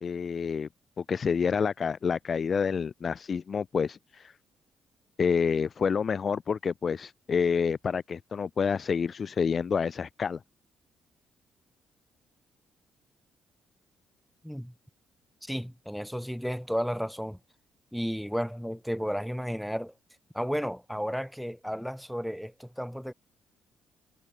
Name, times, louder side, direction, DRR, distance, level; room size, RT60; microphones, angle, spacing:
voice 1, 0.0-0.7 1.0-4.3 5.2-10.4, left 6 dB, 45° left, 0.9 m, -28 dB
voice 2, 14.4-14.7 15.4-17.4 17.9-19.9 20.3-23.1, equal, ahead, 2.4 m, -33 dB
cardioid pair, 90°, 0 cm